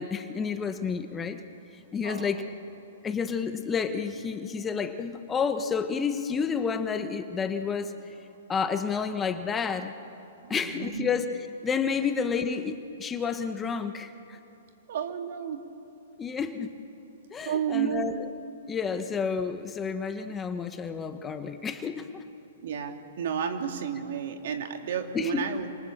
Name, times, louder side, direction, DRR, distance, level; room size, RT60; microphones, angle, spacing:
voice 1, 0.0-1.4 1.9-2.4 3.0-7.9 8.5-9.9 10.5-11.3 11.6-14.4 16.2-16.7 17.3-18.1 18.7-22.2 25.1-25.5, left 6 dB, 15° left, 8 dB, 1.5 m, -30 dB
voice 2, 2.0-2.4 10.4-11.1 14.9-15.6 17.4-18.2 22.6-25.7, right 8 dB, 60° right, 5 dB, 2.9 m, -32 dB
29.0 x 26.5 x 7.5 m, 2.8 s
hypercardioid pair, 120°, 0 cm